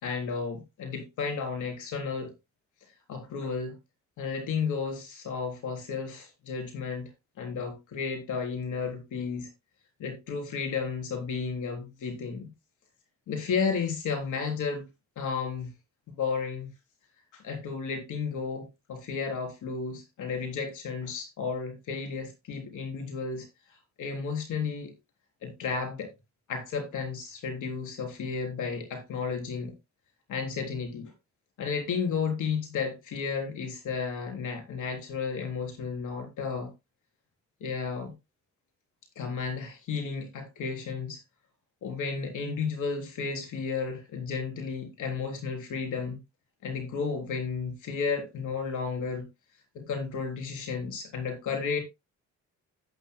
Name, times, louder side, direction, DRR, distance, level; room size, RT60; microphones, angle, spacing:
voice 1, 0.0-2.3 3.1-3.8 4.2-7.1 7.4-9.5 10.0-12.5 13.3-14.9 15.2-15.7 16.2-16.7 17.3-24.9 25.4-26.1 26.5-29.7 30.3-31.1 31.6-36.7 37.6-38.1 39.2-41.2 41.8-46.2 46.6-49.3 49.7-51.8, left 5 dB, 80° left, 3.7 m, -33 dB
14.0 x 9.2 x 2.2 m
cardioid pair, 90°, 30 cm